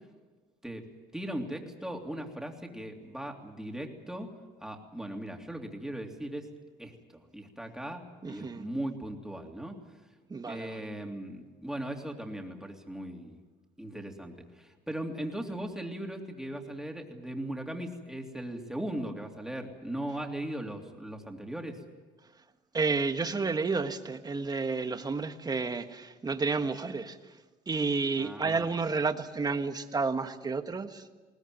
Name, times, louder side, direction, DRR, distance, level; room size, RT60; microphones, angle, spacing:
voice 1, 1.1-4.3 4.6-6.5 6.8-9.8 10.4-13.4 13.8-21.8 28.2-28.7, right 1 dB, 5° right, 3.2 m, -38 dB
voice 2, 8.2-8.6 10.3-10.8 22.7-27.2 27.7-31.0, right 4 dB, 25° right, 1.6 m, -31 dB
21.5 x 19.0 x 9.4 m
cardioid pair, 110°, 17 cm